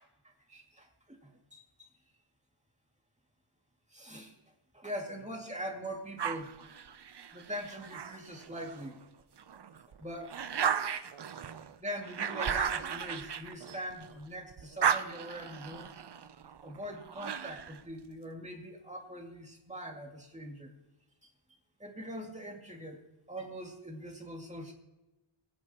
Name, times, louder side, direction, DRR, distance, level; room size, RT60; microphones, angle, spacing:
voice 1, 0.0-1.9 3.9-4.4 4.7-6.5 6.8-6.9 7.3-9.0 10.0-10.4 11.8-15.9 16.6-20.7 21.2-21.3 21.8-23.0 23.3-24.7, equal, 15° right, 1 dB, 2.3 m, -42 dB
sound 1, 6.2-8.9 9.4-14.2 14.5-17.8, right 7 dB, 55° right, 0.7 m, -35 dB
24.0 x 8.5 x 3.0 m, 1.0 s
wide cardioid pair, 90°, 48 cm